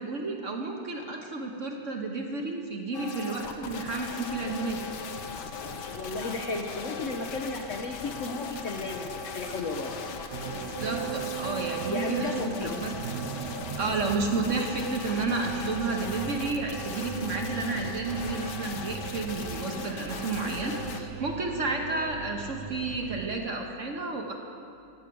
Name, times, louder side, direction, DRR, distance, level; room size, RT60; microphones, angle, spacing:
voice 1, 0.0-4.8 10.5-12.9 13.8-24.3, right 3 dB, 50° right, 2 dB, 1.3 m, -31 dB
sound 1, 2.9-21.0, left 5 dB, 70° left, 1.5 m, -38 dB
voice 2, 5.9-10.0 11.8-12.9, left 3 dB, 55° left, 3 dB, 1.0 m, -34 dB
sound 2, 10.3-23.4, right 10 dB, 85° right, 0.6 m, -38 dB
16.0 x 6.6 x 8.5 m, 2.5 s
omnidirectional pair, 1.9 m